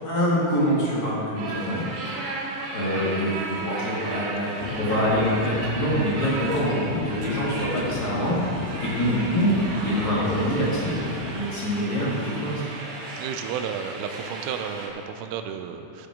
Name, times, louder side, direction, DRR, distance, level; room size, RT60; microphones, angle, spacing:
voice 1, 0.0-1.8 2.3-2.4 2.7-8.4 8.8-9.5 9.8-12.6, equal, 40° left, -8 dB, 1.4 m, -25 dB
sound 1, 1.4-14.9, right 3 dB, 65° right, 3.3 m, -35 dB
sound 2, 4.6-11.3, left 5 dB, 85° left, 3.5 m, -34 dB
voice 2, 13.2-16.1, right 7 dB, 85° right, 7 dB, 3.2 m, -32 dB
17.5 x 7.3 x 3.8 m, 2.5 s
omnidirectional pair, 5.9 m